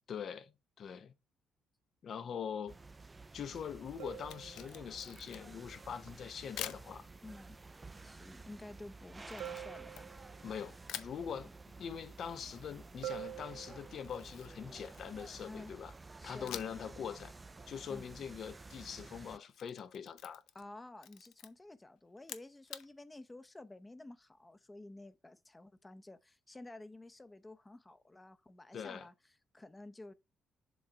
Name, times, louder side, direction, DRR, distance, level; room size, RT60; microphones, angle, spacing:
voice 1, 0.1-0.5 0.8-1.1 2.0-2.8 3.3-7.1 10.4-11.5 11.8-15.9 16.2-17.3 17.7-20.4 28.7-29.1, left 7 dB, 60° left, 0.9 m, -43 dB
sound 1, 2.7-19.4, right 3 dB, 20° right, 0.4 m, -52 dB
sound 2, 4.0-5.1 9.4-10.6 13.0-14.3 17.6-17.8, right 12 dB, 90° right, 0.4 m, -47 dB
Camera, 4.2-5.6 6.6-6.9 9.3-10.5 10.9-11.2 13.9-15.4 16.5-16.9 17.2-17.3 19.3-20.7 21.0-21.5 22.2-22.9, left 11 dB, 85° left, 0.7 m, -47 dB
voice 2, 7.2-7.6 8.0-10.2 15.5-15.7 16.2-16.6 17.9-18.1 20.5-29.1 29.5-30.1, left 2 dB, 15° left, 0.7 m, -51 dB
7.1 x 3.8 x 4.5 m
cardioid pair, 90°, 0 cm